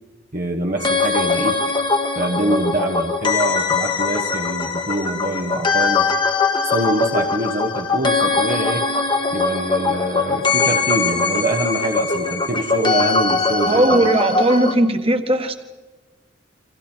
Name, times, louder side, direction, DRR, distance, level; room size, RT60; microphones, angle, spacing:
voice 1, 0.3-1.6 2.1-6.1 6.6-8.9 9.3-14.2, right 1 dB, 45° right, 0 dB, 1.3 m, -24 dB
sound 1, 0.8-14.7, left 4 dB, 25° left, 1.5 m, -21 dB
voice 2, 13.7-15.5, right 1 dB, 30° right, 6 dB, 1.6 m, -17 dB
30.0 x 25.0 x 4.5 m, 1.3 s
head